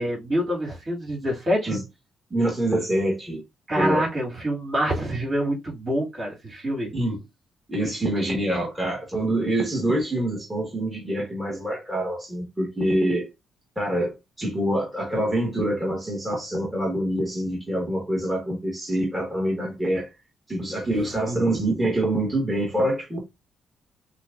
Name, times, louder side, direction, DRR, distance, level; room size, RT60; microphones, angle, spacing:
voice 1, 0.0-1.8 3.7-6.9 21.2-21.4, equal, 40° right, 2.8 m, -26 dB
voice 2, 2.3-3.4 3.7-4.1 6.9-7.2 7.7-13.3 13.8-20.1 20.5-23.2, right 1 dB, 10° right, 2.0 m, -25 dB
6.2 x 2.5 x 2.7 m
cardioid pair, 90°, 0 cm